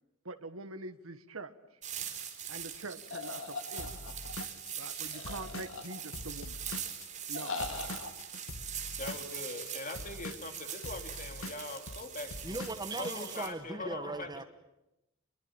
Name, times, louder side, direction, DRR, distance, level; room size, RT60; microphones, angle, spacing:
voice 1, 0.2-1.5 2.5-3.9 4.8-6.6 7.3-7.5, right 3 dB, 85° right, 1.6 m, -44 dB
sound 1, 1.8-13.5, right 9 dB, 35° right, 3.9 m, -42 dB
sound 2, 3.1-4.4 5.1-6.3 7.3-8.1, left 3 dB, 65° left, 2.7 m, -40 dB
Drum kit / Drum, 3.8-7.3 7.6-13.1, left 2 dB, 85° left, 1.7 m, -44 dB
voice 2, 9.0-12.5 13.0-14.4, left 3 dB, 40° left, 3.1 m, -42 dB
voice 3, 12.4-14.4, right 2 dB, 20° right, 1.6 m, -38 dB
25.5 x 22.5 x 8.9 m
head